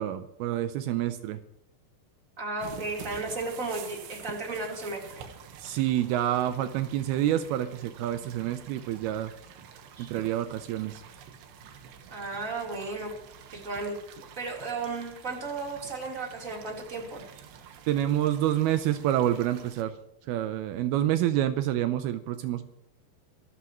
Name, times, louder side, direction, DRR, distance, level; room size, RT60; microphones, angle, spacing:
voice 1, 0.0-1.4 5.6-9.3 10.0-11.0 17.9-19.9 20.3-22.6, right 12 dB, 90° right, 10 dB, 2.2 m, -28 dB
voice 2, 2.4-5.0 10.0-10.1 12.1-13.1 13.5-14.0 14.4-17.2, right 3 dB, 20° right, -1 dB, 3.5 m, -34 dB
sound 1, 2.6-19.8, right 8 dB, 70° right, 3.3 m, -48 dB
25.5 x 13.0 x 3.1 m, 0.81 s
omnidirectional pair, 5.4 m